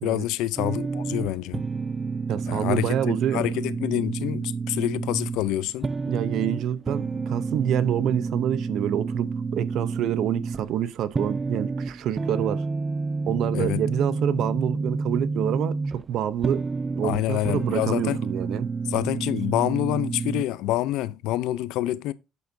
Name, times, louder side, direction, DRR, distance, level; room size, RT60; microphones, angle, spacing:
voice 1, 0.0-1.6 2.5-2.9 3.3-5.9 13.5-13.8 17.0-18.2 18.9-22.1, left 14 dB, 85° left, 0.5 m, -27 dB
sound 1, 0.6-20.4, right 4 dB, 30° right, 0.3 m, -30 dB
voice 2, 2.3-3.5 6.1-12.6 13.3-16.7 16.9-18.7, right 10 dB, 70° right, 0.7 m, -27 dB
8.3 x 6.6 x 2.6 m
cardioid pair, 90°, 0 cm